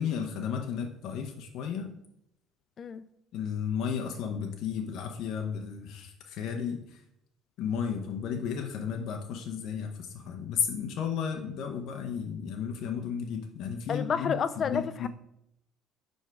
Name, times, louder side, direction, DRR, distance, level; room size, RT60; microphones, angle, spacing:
voice 1, 0.0-1.9 3.3-7.0 7.6-15.1, left 7 dB, 60° left, 3 dB, 0.7 m, -33 dB
voice 2, 2.8-3.1 13.9-15.1, left 7 dB, 35° left, 13 dB, 0.4 m, -30 dB
5.4 x 4.6 x 6.0 m, 0.78 s
cardioid pair, 155°, 0 cm